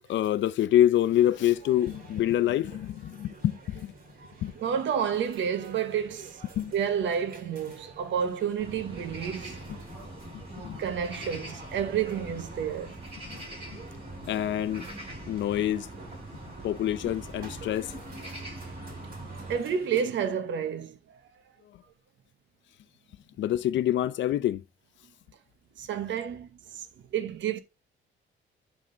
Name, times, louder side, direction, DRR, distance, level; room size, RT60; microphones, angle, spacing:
voice 1, 0.1-3.9 4.4-4.5 6.6-6.7 9.7-9.8 10.6-10.8 13.3-13.4 13.7-13.8 14.3-14.8 15.3-15.9 16.6-17.9 23.4-24.6, left 12 dB, 70° left, 0.6 m, -26 dB
sound 1, 1.0-20.0, right 3 dB, 45° right, 2.5 m, -50 dB
voice 2, 4.6-6.4 6.7-9.6 10.8-13.0 19.5-21.0 25.8-26.9 27.1-27.6, right 8 dB, 70° right, 1.1 m, -30 dB
sound 2, 8.6-19.6, right 1 dB, 30° right, 4.4 m, -42 dB
11.0 x 3.8 x 3.9 m
cardioid pair, 90°, 20 cm